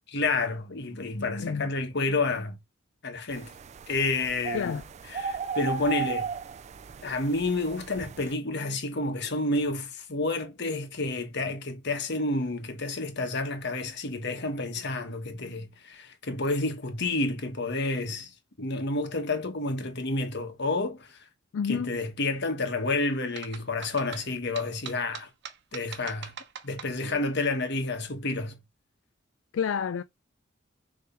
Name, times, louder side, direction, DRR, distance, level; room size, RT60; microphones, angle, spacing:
voice 1, 0.1-2.6 3.0-3.5 3.9-4.7 5.1-6.3 7.0-18.3 18.6-21.2 21.7-25.3 25.7-26.3 26.6-28.6, left 2 dB, 60° left, 1.4 m, -30 dB
sound 1, 3.3-8.3, right 5 dB, 35° right, 0.3 m, -36 dB
voice 2, 4.5-4.8 21.5-22.0 29.5-30.0, left 7 dB, 80° left, 0.4 m, -29 dB
sound 2, 23.4-27.2, right 7 dB, 60° right, 0.9 m, -42 dB
6.9 x 3.3 x 4.3 m
head